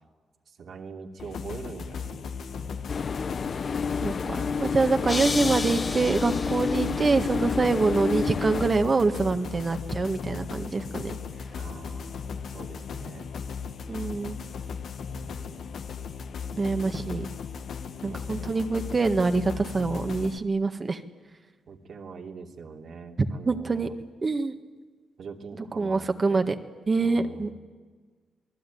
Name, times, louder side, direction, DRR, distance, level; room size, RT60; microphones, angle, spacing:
voice 1, 0.5-2.8 11.5-13.3 15.1-15.9 18.0-18.7 21.7-23.9 25.2-26.4 27.0-27.5, right 5 dB, 65° right, 1 dB, 2.9 m, -43 dB
sound 1, 1.2-20.4, left 6 dB, 70° left, 1.3 m, -37 dB
sound 2, 2.9-8.7, left 5 dB, 50° left, 0.7 m, -30 dB
voice 2, 4.0-11.2 13.9-14.4 16.6-17.2 18.0-21.0 23.5-23.9 24.2-24.5 25.8-26.5 26.9-27.5, right 3 dB, 35° right, 7 dB, 1.7 m, -25 dB
sound 3, 5.1-7.2, left 3 dB, 30° left, 1.2 m, -33 dB
28.5 x 20.0 x 9.4 m, 1.4 s
cardioid pair, 80°, 0 cm